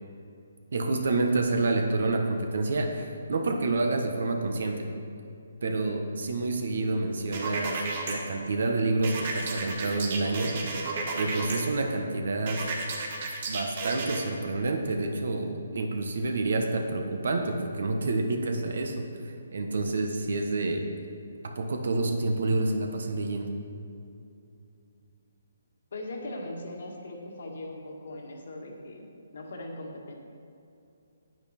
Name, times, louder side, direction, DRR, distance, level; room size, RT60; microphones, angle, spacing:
voice 1, 0.7-4.8 5.6-10.5 11.1-12.6 13.5-20.8 21.4-23.5, right 2 dB, 70° right, 4 dB, 1.2 m, -28 dB
sound 1, 7.3-8.1 9.0-11.6 12.5-14.2, right 3 dB, 45° right, 1.5 m, -33 dB
voice 2, 25.9-30.1, left 1 dB, 65° left, 0 dB, 1.7 m, -40 dB
9.3 x 8.6 x 4.4 m, 2.6 s
hypercardioid pair, 160°, 0 cm